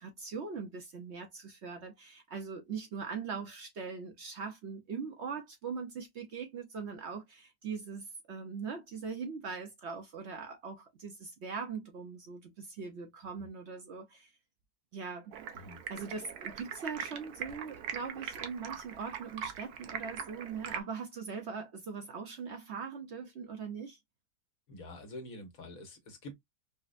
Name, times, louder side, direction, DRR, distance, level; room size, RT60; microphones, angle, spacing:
voice 1, 0.0-14.3 14.9-15.4 15.9-24.0, right 5 dB, 60° right, 0.8 m, -41 dB
Stream, 15.3-20.8, right 8 dB, 85° right, 1.2 m, -42 dB
voice 2, 24.7-26.3, left 1 dB, 65° left, 1.5 m, -46 dB
4.8 x 2.1 x 2.5 m
omnidirectional pair, 1.6 m